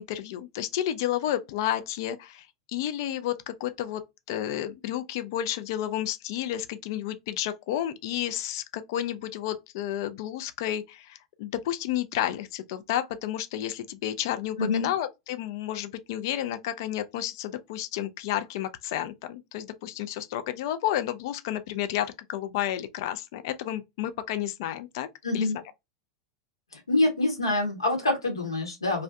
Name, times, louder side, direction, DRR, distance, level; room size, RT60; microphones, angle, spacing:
voice 1, 0.0-2.5 2.7-4.0 4.3-25.1 25.3-25.5, left 12 dB, 55° left, 0.3 m, -31 dB
voice 2, 25.2-25.6 26.7-29.0, left 2 dB, 85° left, 0.9 m, -26 dB
2.4 x 2.1 x 2.5 m
figure-of-eight pair, 90°, 3 cm